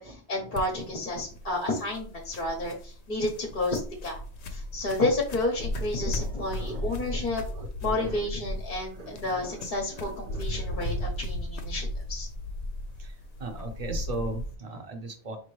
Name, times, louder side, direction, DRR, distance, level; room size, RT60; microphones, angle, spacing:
voice 1, 0.0-4.2 4.5-7.4 7.8-12.3, left 2 dB, 50° left, 0 dB, 1.0 m, -31 dB
sound 1, 0.5-14.5, left 1 dB, 90° left, 0.9 m, -36 dB
voice 2, 6.0-8.3 8.7-11.1 13.0-13.1 13.4-15.4, right 2 dB, 40° right, 5 dB, 0.9 m, -40 dB
4.8 x 2.9 x 3.1 m, 0.40 s
omnidirectional pair, 1.1 m